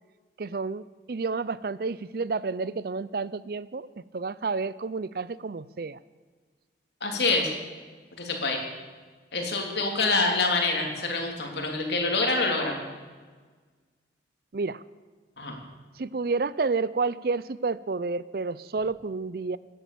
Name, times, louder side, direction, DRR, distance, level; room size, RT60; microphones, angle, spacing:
voice 1, 0.4-3.9 4.1-6.0 14.5-14.8 16.0-19.6, right 4 dB, 55° right, 18 dB, 0.5 m, -30 dB
voice 2, 7.0-7.5 8.2-8.6 9.3-12.8 15.4-15.6, left 3 dB, 70° left, 2 dB, 3.2 m, -26 dB
16.5 x 10.5 x 7.0 m, 1.5 s
head